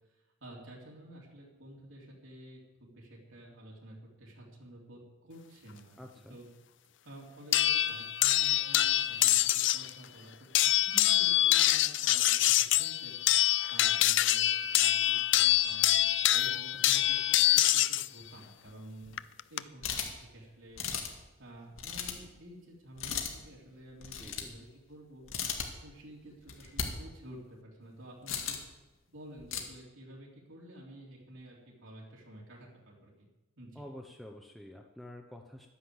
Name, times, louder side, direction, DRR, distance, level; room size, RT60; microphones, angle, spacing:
voice 1, 0.4-6.0 6.3-6.5 7.0-14.5 14.8-19.2 19.5-20.8 21.4-25.2 25.8-28.6 29.1-33.3 33.6-33.8, right 1 dB, 85° right, -4 dB, 3.6 m, -51 dB
voice 2, 6.0-6.4 24.2-24.5 33.7-35.7, left 1 dB, ahead, 1 dB, 0.8 m, -48 dB
sound 1, 7.5-9.9 10.5-18.1 19.2-19.6, left 14 dB, 65° left, 0.4 m, -25 dB
sound 2, 19.8-20.2 20.8-21.2 21.8-22.2 23.0-23.3 24.0-24.6 25.2-25.7 26.4-26.9 28.3-28.7 29.4-29.6, left 7 dB, 85° left, 2.1 m, -36 dB
12.0 x 10.0 x 8.0 m, 1.1 s
head